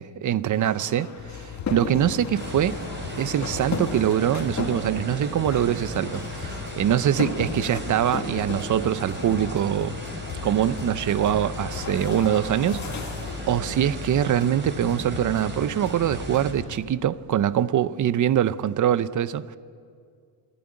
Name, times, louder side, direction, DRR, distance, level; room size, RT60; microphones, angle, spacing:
voice 1, 0.0-1.4 1.7-2.8 3.2-9.9 10.4-13.1 13.5-19.6, right 10 dB, 40° right, 0.6 m, -24 dB
sound 1, 0.5-13.6, left 4 dB, 35° left, 2.2 m, -36 dB
sound 2, 1.2-16.8, left 7 dB, 75° left, 2.2 m, -39 dB
sound 3, 2.4-16.5, right 2 dB, 25° right, 3.7 m, -37 dB
27.0 x 11.0 x 9.7 m
cardioid pair, 125°, 46 cm